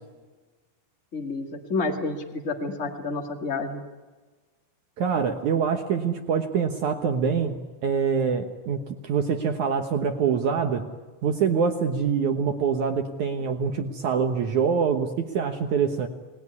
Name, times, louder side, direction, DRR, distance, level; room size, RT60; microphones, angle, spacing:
voice 1, 1.1-3.8, left 3 dB, 40° left, 2 dB, 1.0 m, -29 dB
voice 2, 5.0-10.9 11.2-16.1, right 6 dB, 70° right, 6 dB, 1.8 m, -25 dB
29.5 x 20.0 x 9.6 m, 1.3 s
omnidirectional pair, 5.2 m